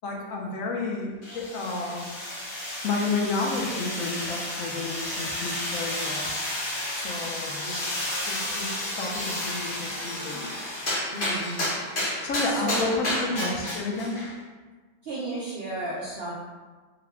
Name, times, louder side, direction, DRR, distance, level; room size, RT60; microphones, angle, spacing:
voice 1, 0.0-2.0 2.8-6.4 6.9-7.9 8.3-10.6 12.2-14.3, left 3 dB, 70° left, 0 dB, 0.9 m, -31 dB
sound 1, 1.2-14.3, left 1 dB, 45° left, 0.8 m, -31 dB
voice 2, 11.1-11.6 12.4-12.9 13.3-13.5 15.0-16.3, right 1 dB, 65° right, -7 dB, 0.6 m, -32 dB
3.6 x 2.2 x 3.4 m, 1.4 s
omnidirectional pair, 1.6 m